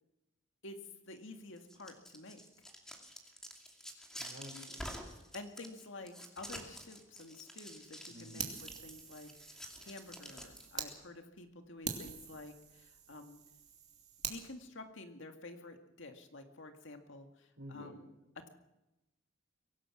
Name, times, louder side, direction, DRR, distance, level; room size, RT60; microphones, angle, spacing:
voice 1, 1.1-2.4 4.1-4.4 5.3-13.4 14.3-18.1, left 2 dB, 65° left, 5 dB, 2.1 m, -50 dB
sound 1, 1.6-10.9, equal, 5° left, 2.6 m, -49 dB
voice 2, 4.2-4.9 8.1-8.5 17.6-18.0, left 1 dB, 80° right, 1 dB, 5.9 m, -50 dB
Fire, 8.4-10.9 11.4-11.5 11.8-14.4, right 6 dB, 35° right, 2.7 m, -45 dB
24.0 x 17.5 x 6.2 m, 0.97 s
head